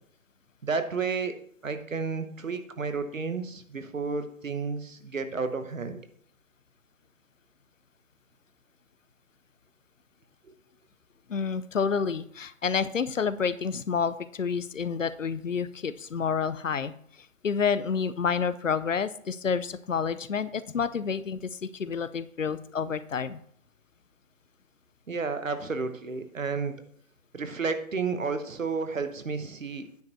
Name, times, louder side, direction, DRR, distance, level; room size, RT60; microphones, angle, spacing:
voice 1, 0.6-1.4 1.6-6.0 10.5-10.6 25.1-26.7 27.3-29.8, right 4 dB, 65° right, 9 dB, 1.1 m, -31 dB
voice 2, 11.3-16.9 17.4-23.4, left 6 dB, 65° left, 15 dB, 0.6 m, -29 dB
9.4 x 4.9 x 4.6 m, 0.62 s
figure-of-eight pair, 150°, 42 cm